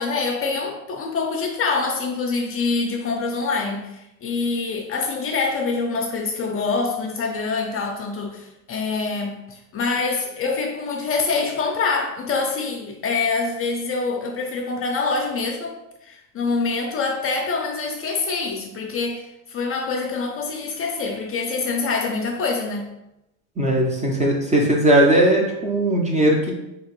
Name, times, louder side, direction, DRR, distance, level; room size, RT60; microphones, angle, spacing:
voice 1, 0.0-15.8 16.0-22.9, left 4 dB, 30° left, 2 dB, 0.5 m, -25 dB
voice 2, 23.6-26.5, right 1 dB, 15° right, -1 dB, 0.5 m, -18 dB
3.0 x 2.9 x 2.9 m, 0.91 s
supercardioid pair, 95°, 43 cm